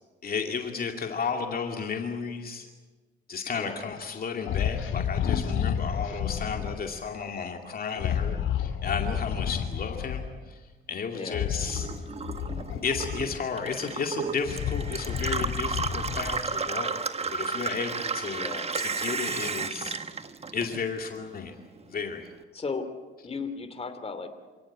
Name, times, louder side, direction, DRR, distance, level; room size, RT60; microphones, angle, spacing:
voice 1, 0.2-2.7 3.3-10.6 10.9-11.9 12.8-16.9 17.2-18.5 18.8-20.0 20.5-21.5 21.9-22.3, left 6 dB, 50° left, 3 dB, 2.4 m, -33 dB
sound 1, 4.5-6.8 7.9-10.3 11.3-13.6 14.1-16.5, left 8 dB, 80° left, 2.5 m, -30 dB
Gurgling / Water tap faucet / Sink (filling or washing), 11.6-21.1 21.5-22.3, right 4 dB, 30° right, 1.4 m, -33 dB
voice 2, 18.3-18.7 22.5-22.9 23.2-24.3, left 4 dB, 30° left, 8 dB, 2.7 m, -35 dB
27.5 x 17.5 x 8.7 m, 1.3 s
cardioid pair, 90°, 20 cm